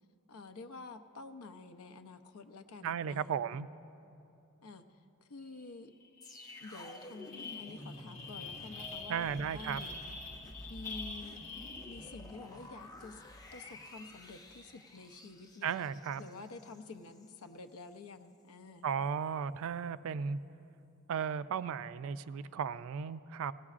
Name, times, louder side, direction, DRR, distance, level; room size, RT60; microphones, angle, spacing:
voice 1, 0.3-3.4 4.6-5.9 6.6-9.9 10.7-11.4 11.8-13.2 13.5-15.9 16.2-18.9, left 3 dB, 75° left, 7 dB, 0.6 m, -49 dB
voice 2, 2.8-3.7 9.1-9.8 15.6-16.2 18.8-20.4 21.1-23.5, right 7 dB, 65° right, 15 dB, 0.3 m, -35 dB
sound 1, 5.6-5.7 6.0-12.4, left 3 dB, 40° left, 0.9 m, -46 dB
sound 2, 6.2-17.4 17.7-17.9, left 1 dB, 15° left, 0.7 m, -51 dB
17.0 x 17.0 x 2.4 m, 2.7 s
head